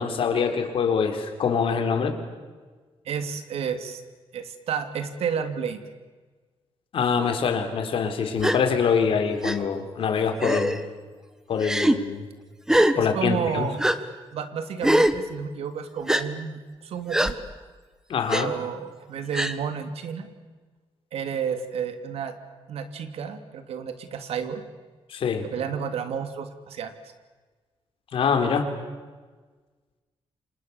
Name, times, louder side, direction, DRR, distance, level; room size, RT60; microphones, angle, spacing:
voice 1, 0.0-2.1 6.9-10.8 11.5-12.2 13.0-13.7 18.1-18.5 25.1-25.5 28.1-28.7, left 6 dB, 60° left, 5 dB, 4.1 m, -24 dB
voice 2, 3.0-4.0 4.3-5.8 12.9-13.8 14.3-17.4 18.3-20.3 21.1-22.3 22.7-24.6 25.4-26.9, right 7 dB, 80° right, 8 dB, 2.8 m, -31 dB
Gasp, 8.4-8.6 9.4-9.6 10.4-10.8 11.6-12.0 12.7-13.0 13.8-14.0 14.8-15.2 16.1-16.2 17.1-17.3 18.3-18.4 19.3-19.6, right 1 dB, 5° right, 1.3 m, -21 dB
30.0 x 26.5 x 7.2 m, 1.4 s
wide cardioid pair, 145°, 10 cm